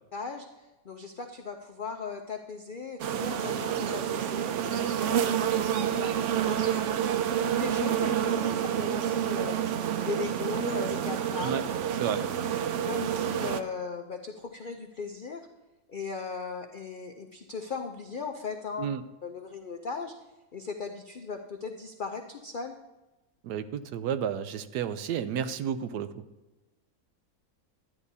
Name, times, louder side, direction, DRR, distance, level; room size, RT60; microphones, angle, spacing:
voice 1, 0.1-11.5 12.9-15.5 15.9-18.9 19.2-20.1 20.5-22.8, left 4 dB, 70° left, 4 dB, 0.4 m, -38 dB
sound 1, 3.0-13.6, right 9 dB, 70° right, 0.7 m, -28 dB
voice 2, 23.4-26.2, right 8 dB, 85° right, 11 dB, 1.2 m, -31 dB
12.5 x 9.8 x 2.7 m, 1.1 s
omnidirectional pair, 1.7 m